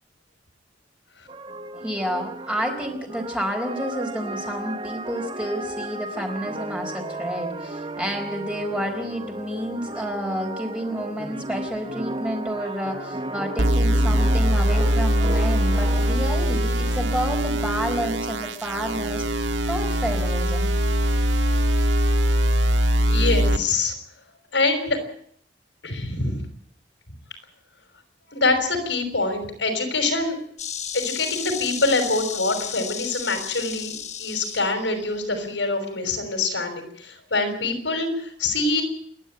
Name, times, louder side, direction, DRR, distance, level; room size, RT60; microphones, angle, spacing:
sound 1, 1.3-16.2, right 2 dB, 30° right, 1.2 m, -34 dB
voice 1, 1.8-20.7, equal, 5° right, 2 dB, 4.4 m, -30 dB
sound 2, 13.6-23.6, equal, 90° right, 1.7 m, -22 dB
voice 2, 23.0-23.9 24.5-25.0 25.8-26.4 28.3-30.4 30.9-38.8, left 3 dB, 85° left, 6 dB, 5.7 m, -25 dB
Insect, 30.6-35.6, left 8 dB, 40° left, 1.5 m, -34 dB
28.5 x 11.5 x 8.9 m, 0.64 s
head